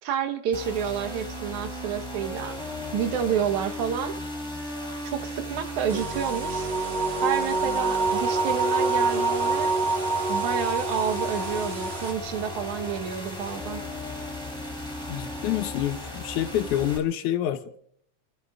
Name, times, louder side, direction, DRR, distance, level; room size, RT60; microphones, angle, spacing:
voice 1, 0.0-2.6 2.9-4.1 5.0-6.7 7.2-9.8 10.3-13.8, right 8 dB, 80° right, 2.6 m, -29 dB
sound 1, 0.5-17.0, left 1 dB, ahead, 3.3 m, -36 dB
sound 2, 5.9-12.1, right 3 dB, 35° right, 0.9 m, -26 dB
voice 2, 15.1-17.8, left 12 dB, 80° left, 2.4 m, -27 dB
30.0 x 12.5 x 3.6 m
omnidirectional pair, 3.4 m